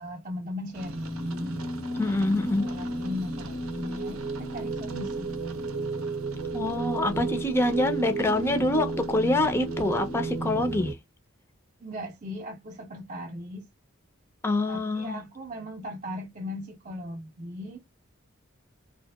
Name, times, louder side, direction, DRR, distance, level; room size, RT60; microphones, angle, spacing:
voice 1, 0.0-2.3 2.6-5.7 11.8-13.7 14.7-17.8, left 1 dB, 40° right, 0.6 m, -38 dB
sound 1, 0.7-10.9, right 2 dB, 80° right, 0.7 m, -33 dB
voice 2, 2.0-2.7 6.5-11.0 14.4-15.2, left 2 dB, 10° left, 0.4 m, -26 dB
2.7 x 2.5 x 2.2 m
head